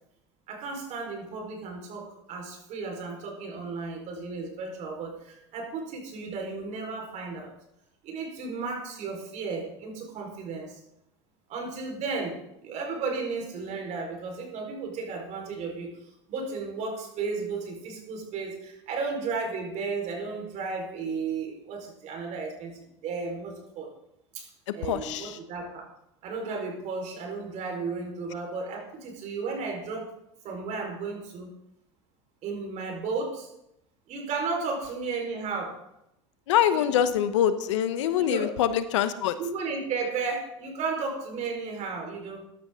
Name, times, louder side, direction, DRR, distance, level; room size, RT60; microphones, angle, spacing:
voice 1, 0.5-7.5 8.0-10.8 11.5-16.0 16.3-23.9 24.3-24.5 24.7-25.9 26.2-30.1 30.4-31.5 32.4-33.5 34.1-35.8 36.7-36.9 38.1-38.5 39.4-42.4, right 4 dB, 50° right, 2 dB, 4.4 m, -34 dB
voice 2, 24.8-25.4 36.5-39.4, left 10 dB, 80° left, 12 dB, 1.0 m, -24 dB
15.0 x 11.0 x 3.7 m, 0.83 s
hypercardioid pair, 95°, 15 cm